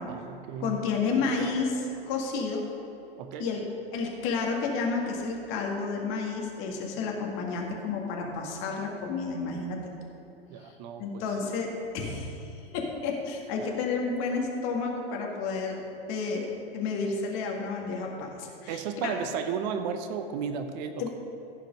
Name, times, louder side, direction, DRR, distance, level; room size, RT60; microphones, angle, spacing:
voice 1, 0.1-0.8 3.2-3.5 10.5-11.2 18.7-21.1, right 6 dB, 45° right, 8 dB, 0.8 m, -34 dB
voice 2, 0.6-2.6 3.4-3.6 3.9-9.8 10.6-10.7 11.0-15.8 16.1-19.2 21.0-21.1, left 4 dB, 40° left, 1 dB, 1.9 m, -31 dB
15.0 x 5.2 x 5.3 m, 2.9 s
figure-of-eight pair, 90°, 30 cm